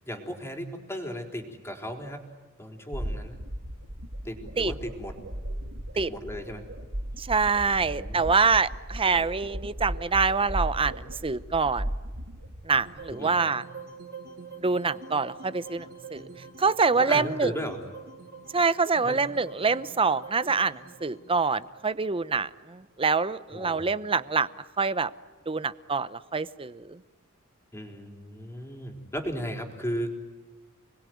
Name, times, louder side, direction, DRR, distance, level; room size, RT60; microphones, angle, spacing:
voice 1, 0.0-2.2 2.6-3.4 4.2-5.2 5.9-6.6 7.6-8.3 13.1-13.3 17.0-17.8 19.0-19.2 23.5-23.9 27.7-30.1, equal, 10° left, 3 dB, 3.9 m, -36 dB
sound 1, 2.9-13.1, right 1 dB, 90° right, 2.9 m, -36 dB
voice 2, 7.2-11.9 12.6-13.6 14.6-16.3 16.6-17.5 18.5-24.5 24.8-25.1 25.5-27.0, right 4 dB, 25° right, 15 dB, 0.8 m, -25 dB
sound 2, 12.7-22.9, right 4 dB, 45° right, 3.5 m, -46 dB
30.0 x 21.0 x 9.4 m, 1.3 s
head